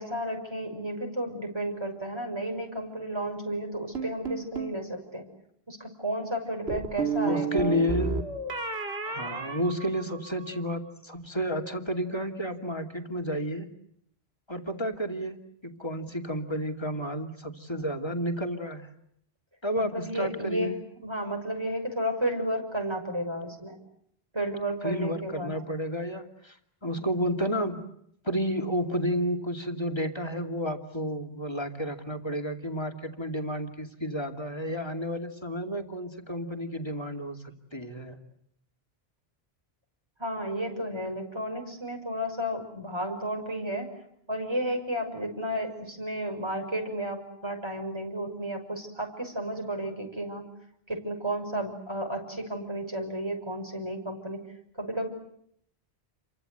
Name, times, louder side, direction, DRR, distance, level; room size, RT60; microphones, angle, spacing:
voice 1, 0.0-5.2 5.7-7.8 19.7-20.7 21.0-23.8 24.3-25.5 26.8-27.0 40.2-43.9 44.3-50.5 50.9-54.4 54.8-55.1, right 1 dB, 25° right, 3 dB, 6.4 m, -32 dB
sound 1, 3.9-4.8 6.7-10.4, right 4 dB, 80° right, 3.1 m, -32 dB
voice 2, 7.2-8.2 9.0-13.7 14.5-18.9 19.6-20.8 24.8-26.6 26.8-27.8 28.2-38.2, equal, 25° left, 4 dB, 2.7 m, -31 dB
30.0 x 24.5 x 8.1 m, 0.71 s
omnidirectional pair, 1.1 m